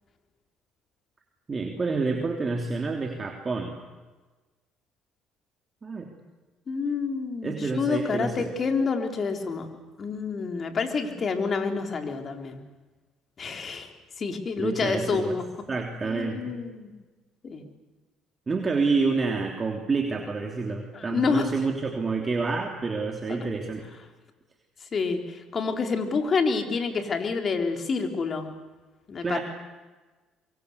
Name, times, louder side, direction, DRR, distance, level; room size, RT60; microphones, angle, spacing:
voice 1, 1.5-3.7 5.8-6.1 7.4-8.5 14.6-15.4 15.7-16.6 18.5-23.8 29.2-29.4, right 4 dB, 30° right, 2 dB, 3.1 m, -28 dB
voice 2, 6.7-9.7 10.0-12.6 13.4-13.9 14.2-15.4 16.0-16.9 17.4-17.7 20.9-21.5 24.9-28.5 29.1-29.4, left 4 dB, 40° left, 5 dB, 3.9 m, -28 dB
24.0 x 23.5 x 8.2 m, 1.3 s
cardioid pair, 95°, 0 cm